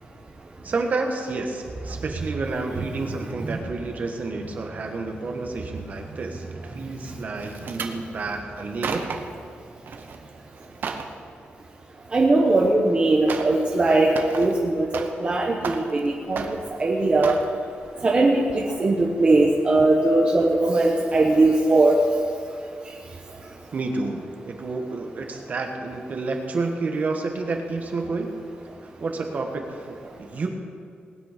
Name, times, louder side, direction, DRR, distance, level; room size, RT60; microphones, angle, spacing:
voice 1, 0.6-9.1 23.7-28.3 28.8-30.5, right 3 dB, 45° right, 3 dB, 1.5 m, -30 dB
sound 1, 7.4-8.0 8.6-9.4 9.9-10.2 10.5-11.1 12.5-12.6 13.3-13.6 13.9-15.3 15.6-16.1 16.4-16.8 17.2-17.5 18.0-18.2 18.5-18.6, right 5 dB, 60° right, 1.0 m, -33 dB
voice 2, 12.1-17.4 18.0-22.0, right 2 dB, 25° right, -1 dB, 1.1 m, -20 dB
20.0 x 9.3 x 5.1 m, 2.3 s
wide cardioid pair, 170°, 4 cm